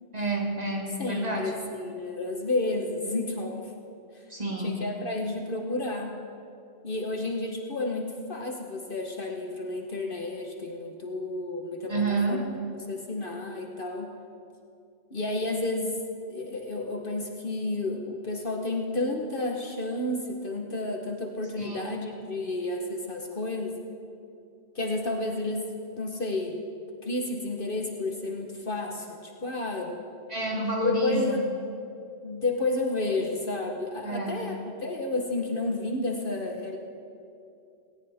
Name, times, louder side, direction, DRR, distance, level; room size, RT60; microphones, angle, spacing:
voice 1, 0.1-1.5 4.3-4.8 11.9-12.4 21.6-21.8 30.3-31.4 34.0-34.4, right 2 dB, 35° right, -1 dB, 2.0 m, -29 dB
voice 2, 1.0-3.7 4.6-6.1 6.8-12.4 12.7-14.1 15.1-16.0 16.3-23.8 24.7-25.7 25.9-26.6 27.0-30.0 30.8-31.4 32.2-36.8, left 2 dB, 50° left, 1 dB, 1.3 m, -31 dB
18.0 x 17.5 x 3.5 m, 2.6 s
omnidirectional pair, 1.2 m